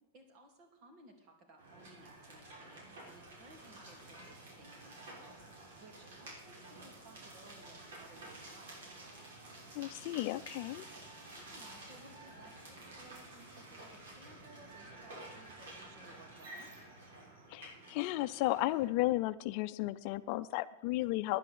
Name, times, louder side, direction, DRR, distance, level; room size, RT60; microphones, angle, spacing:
voice 1, 0.1-8.9 11.3-16.7, right 1 dB, 45° right, 3 dB, 3.0 m, -59 dB
sound 1, 1.6-18.8, right 2 dB, 80° right, 5.7 m, -51 dB
voice 2, 9.7-10.9 17.5-21.4, left 17 dB, 55° left, 13 dB, 0.5 m, -34 dB
10.0 x 8.3 x 8.2 m, 1.0 s
hypercardioid pair, 130°, 0 cm